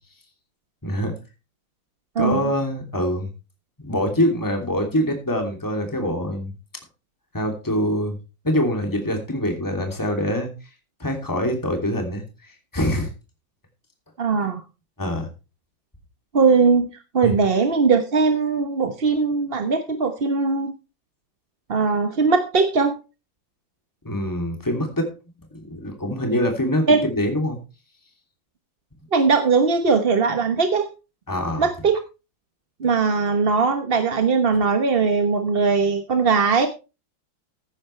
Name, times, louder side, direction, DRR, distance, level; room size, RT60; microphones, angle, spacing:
voice 1, 0.8-1.2 2.2-3.3 3.8-6.5 7.3-8.2 8.4-10.5 11.0-12.2 12.7-13.1 15.0-15.3 17.2-17.3 24.0-25.1 25.5-27.6 31.3-31.7, equal, 10° left, 3 dB, 2.8 m, -24 dB
voice 2, 14.2-14.6 16.3-16.9 17.1-20.7 21.7-22.9 26.9-27.1 29.1-30.9 31.6-32.0 32.8-36.7, right 4 dB, 35° right, 7 dB, 1.1 m, -20 dB
15.0 x 10.5 x 3.2 m, 0.30 s
omnidirectional pair, 2.1 m